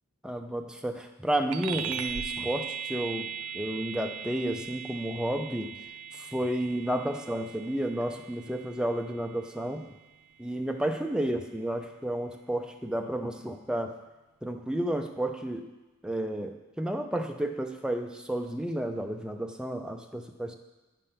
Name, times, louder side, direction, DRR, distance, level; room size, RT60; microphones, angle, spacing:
voice 1, 0.2-5.8 6.1-10.0 10.4-13.9 14.4-15.7 16.0-20.5, right 1 dB, 5° right, 5 dB, 0.4 m, -32 dB
sound 1, 1.5-11.4, right 7 dB, 85° right, 0.5 m, -39 dB
8.7 x 3.6 x 5.6 m, 1.1 s
head